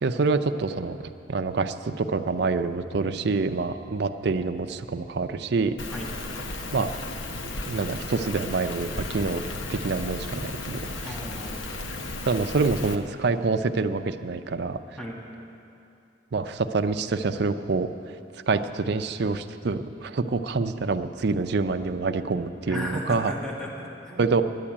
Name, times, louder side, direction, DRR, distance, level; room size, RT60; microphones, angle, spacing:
voice 1, 0.0-1.0 1.3-5.7 6.7-6.9 7.7-11.2 12.3-14.8 16.3-17.9 18.5-23.3 24.2-24.4, right 4 dB, 60° right, 8 dB, 0.5 m, -26 dB
Rain, 5.8-13.0, left 2 dB, 85° left, 0.9 m, -34 dB
voice 2, 11.0-11.6 11.8-12.0 15.0-15.2 22.7-24.4, equal, 5° left, -3 dB, 1.6 m, -35 dB
11.0 x 8.6 x 9.8 m, 2.7 s
head